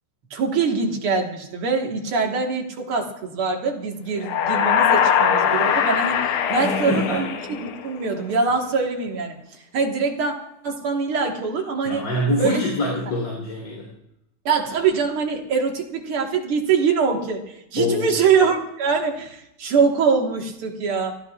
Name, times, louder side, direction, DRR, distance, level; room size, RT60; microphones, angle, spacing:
voice 1, 0.3-7.4 7.6-9.4 9.7-10.3 10.6-12.1 12.4-12.6 14.5-21.2, right 5 dB, 50° right, 2 dB, 2.2 m, -23 dB
sound 1, 4.2-8.0, left 8 dB, 70° left, 1.3 m, -21 dB
voice 2, 6.5-7.2 11.8-13.9 17.8-18.1, left 1 dB, 45° left, -3 dB, 4.2 m, -25 dB
28.5 x 14.0 x 2.4 m, 0.83 s
omnidirectional pair, 3.4 m